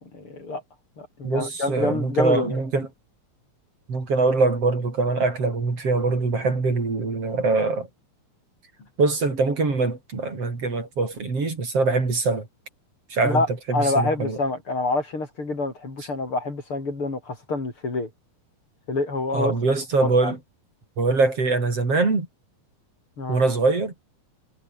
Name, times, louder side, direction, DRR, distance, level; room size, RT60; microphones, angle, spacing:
voice 1, 0.0-0.6 1.0-2.6 13.2-18.1 18.9-19.5 20.0-20.3 23.2-23.4, left 3 dB, 40° left, 5.8 m, -27 dB
voice 2, 1.2-2.9 3.9-7.9 9.0-12.5 13.1-13.4 13.7-14.4 19.3-20.4 21.0-22.3 23.3-23.9, right 3 dB, 50° right, 5.8 m, -23 dB
omnidirectional pair, 3.5 m